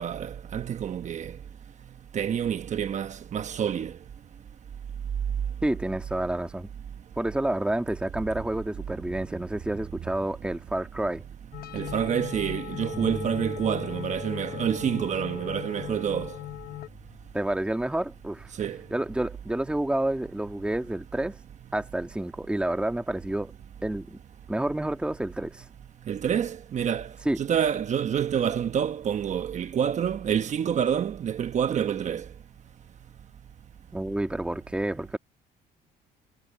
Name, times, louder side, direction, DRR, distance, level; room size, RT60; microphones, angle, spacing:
voice 1, 0.0-1.3 2.1-3.9 11.7-16.3 18.6-18.8 26.1-27.1 27.4-32.2, right 8 dB, 45° right, 1.1 m, -28 dB
voice 2, 5.6-6.7 7.2-11.2 17.3-18.5 18.9-21.4 21.7-23.5 23.8-24.2 24.5-25.6 27.3-27.4 33.9-35.2, right 1 dB, 5° right, 1.7 m, -29 dB
sound 1, 11.5-16.9, left 14 dB, 60° left, 1.2 m, -38 dB
Bass guitar, 12.9-19.2, left 4 dB, 25° left, 5.0 m, -44 dB
cardioid pair, 110°, 17 cm